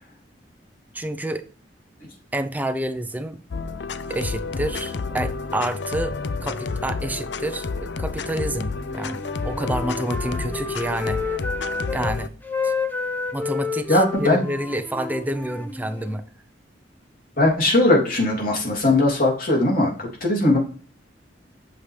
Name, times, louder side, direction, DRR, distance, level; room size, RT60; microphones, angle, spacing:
voice 1, 0.9-1.4 2.3-3.4 4.1-11.4 11.9-12.3 12.6-12.7 13.3-16.2, right 1 dB, 10° right, 0.6 m, -28 dB
sound 1, 3.5-12.3, left 4 dB, 70° left, 0.5 m, -30 dB
Wind instrument woodwind instrument, 8.8-12.1 12.4-16.2, left 4 dB, 10° left, 1.0 m, -30 dB
voice 2, 13.9-14.4 17.4-20.6, left 2 dB, 55° left, 3.1 m, -19 dB
8.5 x 6.4 x 3.3 m
head